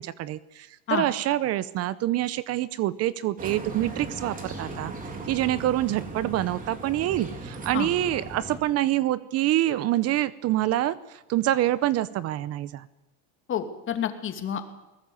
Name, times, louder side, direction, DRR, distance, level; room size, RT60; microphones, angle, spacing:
voice 1, 0.0-4.9 5.3-12.9, right 14 dB, 45° right, 17 dB, 0.8 m, -26 dB
sound 1, 3.4-8.6, right 2 dB, 25° right, 3.8 m, -38 dB
voice 2, 13.5-14.6, left 9 dB, 35° left, 7 dB, 2.7 m, -29 dB
22.0 x 19.5 x 7.2 m, 1.0 s
cardioid pair, 140°, 35 cm